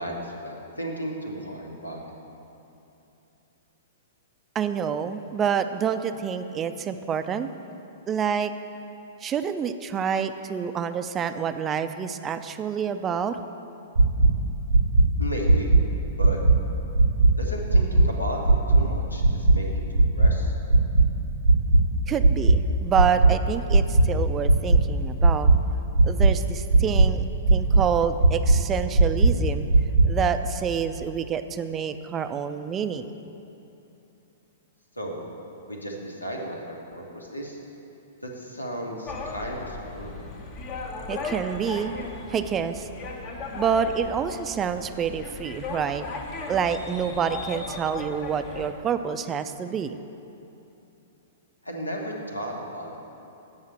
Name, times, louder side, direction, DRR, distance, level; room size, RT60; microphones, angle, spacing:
voice 1, 0.0-2.0 15.2-15.7 16.2-16.4 17.4-19.9 20.1-20.5 35.0-35.2 35.7-37.6 38.2-40.2 51.6-53.0, equal, 90° left, 0 dB, 1.3 m, -34 dB
voice 2, 4.5-7.8 8.1-8.5 9.2-13.4 22.1-25.5 26.0-27.2 27.5-29.7 30.0-33.3 41.1-41.9 42.3-42.9 43.5-46.0 46.5-50.0, right 7 dB, 20° right, 10 dB, 0.4 m, -27 dB
sound 1, 13.9-14.3 14.7-15.0 15.4-15.8 16.2-16.5 16.9-17.3 17.7-18.0 18.4-18.8 19.2-19.5 19.9-20.3 20.7-21.0 21.4-21.8 22.2-22.5 22.9-23.3 23.7-24.0 24.4-24.8 25.2-25.5 25.9-26.3 26.7-27.1 27.4-27.8 28.2-28.6 28.9-29.3 29.7-30.0, right 2 dB, 75° right, 0.7 m, -16 dB
sound 2, 39.1-48.7, left 3 dB, 40° left, 1.0 m, -36 dB
7.9 x 5.6 x 7.5 m, 2.9 s
figure-of-eight pair, 110°, 0 cm